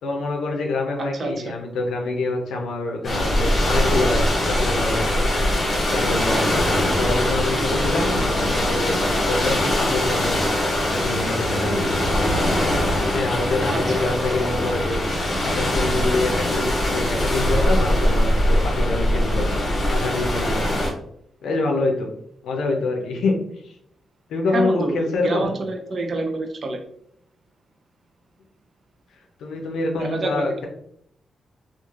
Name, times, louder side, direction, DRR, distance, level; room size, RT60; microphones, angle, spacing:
voice 1, 0.0-5.2 5.9-6.6 7.0-9.0 9.3-10.4 10.9-11.9 13.1-15.0 15.4-19.6 19.9-20.6 21.4-22.1 22.4-23.3 23.6-23.7 24.3-25.5 29.4-30.7, left 2 dB, 90° left, 0 dB, 0.5 m, -26 dB
voice 2, 1.0-1.4 13.7-14.2 16.4-16.5 24.5-25.0 25.2-26.8 30.0-30.4, right 2 dB, 50° right, 5 dB, 0.5 m, -27 dB
sound 1, 3.0-20.9, left 1 dB, 45° left, 1.2 m, -22 dB
3.0 x 2.4 x 2.4 m, 0.70 s
cardioid pair, 80°, 0 cm